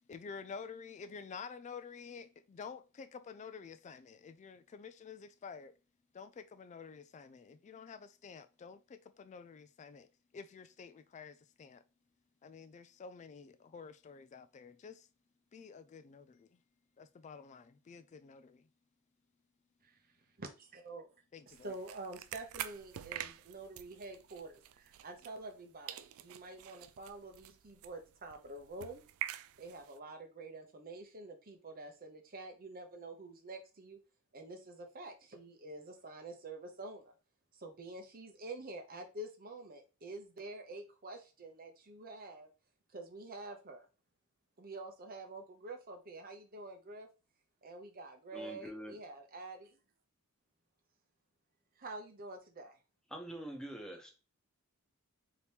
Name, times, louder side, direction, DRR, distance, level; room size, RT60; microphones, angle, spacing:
voice 1, 0.1-5.7 6.1-10.1 10.3-11.8 12.4-15.1 15.5-16.6 17.0-18.7 21.3-21.7, left 5 dB, 30° left, 0.3 m, -50 dB
voice 2, 20.4-21.1 21.5-29.0 29.6-34.0 34.3-37.1 37.6-42.5 42.9-43.9 44.6-47.1 47.6-49.8 51.8-52.7, right 2 dB, 40° right, 0.8 m, -47 dB
sound 1, 21.5-25.6 25.9-30.0, right 12 dB, 65° right, 0.3 m, -47 dB
voice 3, 48.3-49.0 53.1-54.1, right 1 dB, 5° left, 0.9 m, -45 dB
4.2 x 2.9 x 3.4 m
head